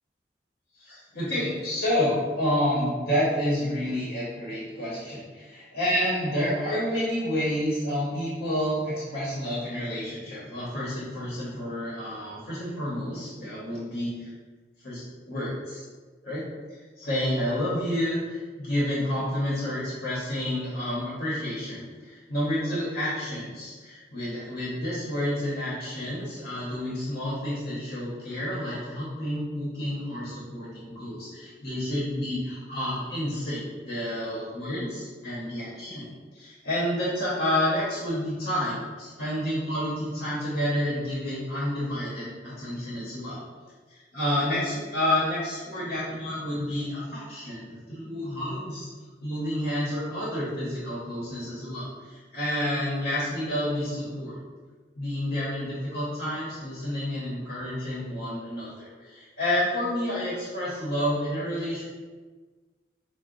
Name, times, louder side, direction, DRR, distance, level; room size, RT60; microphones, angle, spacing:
voice 1, 0.8-14.1 14.8-15.0 15.3-15.8 16.2-16.4 17.0-36.1 36.3-43.4 43.9-48.9 49.2-54.4 55.0-61.8, left 1 dB, 60° left, -8 dB, 0.9 m, -29 dB
4.6 x 2.2 x 2.6 m, 1.4 s
head